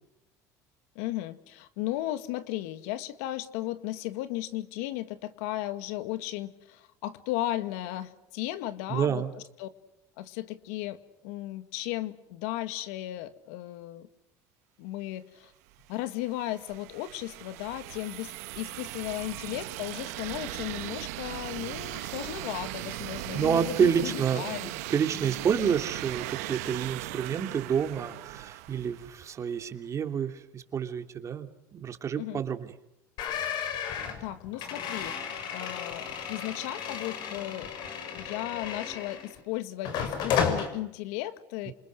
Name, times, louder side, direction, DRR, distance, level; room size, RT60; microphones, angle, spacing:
voice 1, 1.0-9.7 10.2-14.1 14.8-15.5 15.9-24.7 25.6-25.7 32.2-32.4 34.2-37.7 38.1-41.7, left 15 dB, 85° left, 12 dB, 1.9 m, -35 dB
voice 2, 8.9-9.3 23.3-32.7, right 7 dB, 40° right, 6 dB, 3.2 m, -29 dB
sound 1, 15.8-29.5, right 18 dB, 85° right, 1.4 m, -38 dB
sound 2, 33.2-39.4 39.8-40.7, left 7 dB, 65° left, 6.2 m, -33 dB
28.5 x 27.5 x 6.6 m, 0.86 s
supercardioid pair, 100°, 8 cm